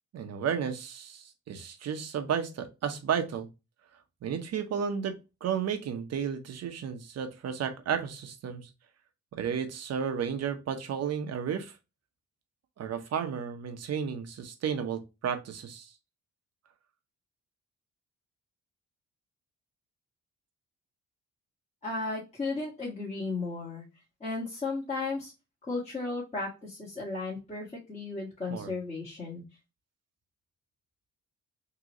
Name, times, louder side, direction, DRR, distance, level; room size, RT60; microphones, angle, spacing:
voice 1, 0.1-3.5 4.2-8.7 9.3-11.8 12.8-15.9 28.5-28.7, right 7 dB, 55° right, 7 dB, 0.9 m, -33 dB
voice 2, 21.8-23.8 24.2-25.3 25.7-29.4, left 3 dB, 20° left, -7 dB, 1.7 m, -34 dB
3.8 x 3.0 x 3.0 m, 0.26 s
cardioid pair, 90°, 30 cm